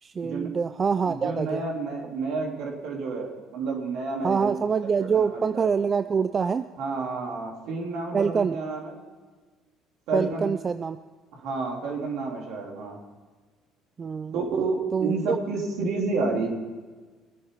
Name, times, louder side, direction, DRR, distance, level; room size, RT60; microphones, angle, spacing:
voice 1, 0.0-1.6 4.2-6.7 8.1-8.6 10.1-11.0 14.0-14.4 14.9-15.4, right 6 dB, 35° right, 11 dB, 0.5 m, -25 dB
voice 2, 1.0-4.6 5.0-5.7 6.8-9.0 10.1-10.5 11.3-13.0 14.3-16.5, right 3 dB, 70° right, 0 dB, 3.5 m, -30 dB
22.5 x 8.7 x 5.5 m, 1.4 s
supercardioid pair, 75°, 0 cm